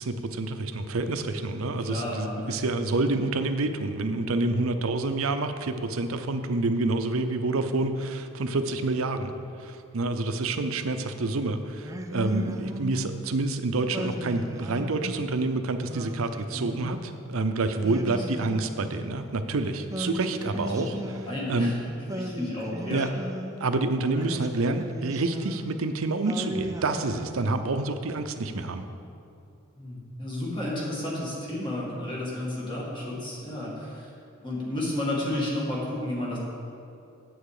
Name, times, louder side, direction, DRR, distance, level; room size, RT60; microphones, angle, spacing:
voice 1, 0.0-9.3 9.6-21.2 21.5-21.7 22.9-23.1 23.6-28.8, right 2 dB, 75° right, 8 dB, 0.6 m, -28 dB
voice 2, 1.8-2.5 16.5-16.8 17.7-18.4 20.7-21.0 21.3-21.8 22.1-23.1 24.1-24.2 29.8-34.1 34.4-36.4, left 1 dB, 20° left, -5 dB, 2.1 m, -32 dB
Singing, 11.8-13.3 13.9-15.3 15.9-17.2 17.8-19.3 19.9-21.7 22.1-23.7 24.2-25.9 26.2-27.9, equal, 15° right, 0.5 m, -37 dB
9.0 x 7.9 x 4.9 m, 2.6 s
head